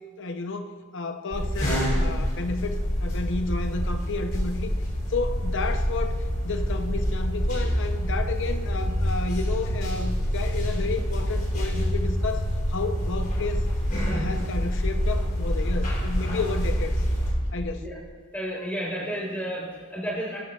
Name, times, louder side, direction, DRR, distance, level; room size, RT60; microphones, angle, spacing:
voice 1, 0.2-4.7 5.1-6.2 6.4-13.6 14.1-17.0 17.5-17.9, left 3 dB, 60° left, 8 dB, 0.8 m, -32 dB
sound 1, 1.3-17.3, equal, 40° left, 3.6 m, -26 dB
voice 2, 18.3-20.4, equal, 5° left, -4 dB, 3.9 m, -31 dB
22.5 x 9.4 x 2.5 m, 1.5 s
head